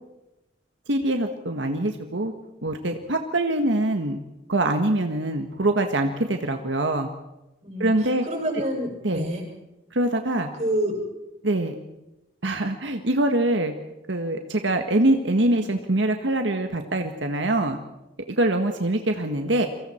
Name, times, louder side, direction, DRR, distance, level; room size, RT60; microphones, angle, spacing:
voice 1, 0.9-2.3 2.6-4.2 4.5-7.1 7.8-8.2 9.0-9.3 9.9-10.5 11.4-11.7 12.4-13.7 14.1-17.8 18.3-19.7, right 1 dB, 85° right, 5 dB, 1.6 m, -24 dB
voice 2, 7.6-9.4 10.6-10.9, right 1 dB, 40° right, 1 dB, 6.6 m, -28 dB
29.5 x 24.0 x 4.5 m, 0.95 s
head